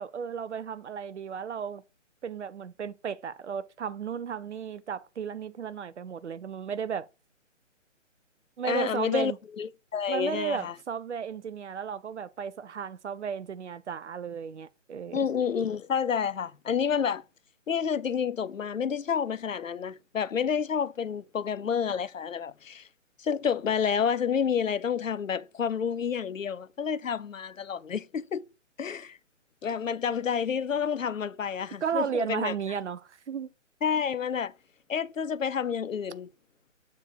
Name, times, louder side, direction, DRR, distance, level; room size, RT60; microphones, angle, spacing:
voice 1, 0.0-1.8 2.2-7.1 8.6-9.4 10.1-15.2 31.8-33.5, right 7 dB, 65° right, 0.8 m, -34 dB
voice 2, 8.6-10.7 15.1-17.2 17.7-22.9 23.2-28.5 28.8-29.2 29.6-32.5 33.8-34.5 34.9-36.3, left 7 dB, 90° left, 0.6 m, -29 dB
7.3 x 3.8 x 4.3 m
figure-of-eight pair, 140°, 38 cm